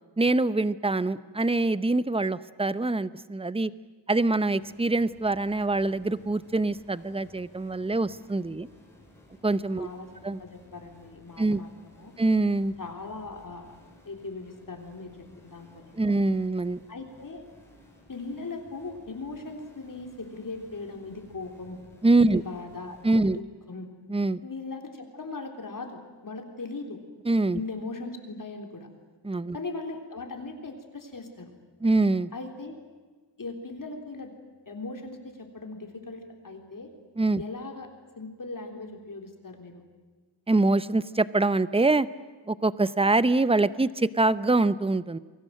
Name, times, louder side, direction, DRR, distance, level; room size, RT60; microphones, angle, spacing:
voice 1, 0.2-3.7 4.1-8.7 9.4-9.9 10.2-10.4 11.4-11.6 12.2-12.7 16.0-16.8 22.0-22.4 23.0-23.4 24.1-24.4 27.3-27.6 29.2-29.6 31.8-32.3 37.2-37.4 40.5-42.1 42.5-45.2, right 2 dB, 15° right, 15 dB, 0.7 m, -24 dB
sound 1, 4.6-23.2, left 1 dB, 5° left, 7.2 m, -56 dB
voice 2, 9.8-10.1 10.4-12.1 12.8-13.8 14.0-16.1 16.9-17.4 18.1-21.8 22.2-23.0 23.2-23.9 24.4-27.0 27.5-28.9 29.5-31.5 32.3-32.8 33.4-34.3 34.7-36.9 37.4-37.9 38.2-39.8, left 3 dB, 50° left, 4 dB, 3.8 m, -39 dB
29.5 x 22.5 x 7.8 m, 1.4 s
wide cardioid pair, 125°, 43 cm